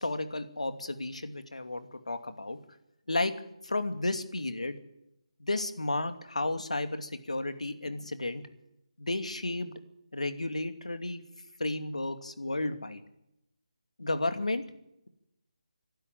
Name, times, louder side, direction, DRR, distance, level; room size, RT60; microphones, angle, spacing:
voice 1, 0.0-2.6 3.1-3.3 3.6-4.8 5.4-8.4 9.0-9.7 10.1-11.2 11.6-13.0 14.0-14.6, left 2 dB, 80° left, 8 dB, 2.6 m, -32 dB
24.5 x 12.5 x 9.2 m, 0.85 s
figure-of-eight pair, 160°, 4 cm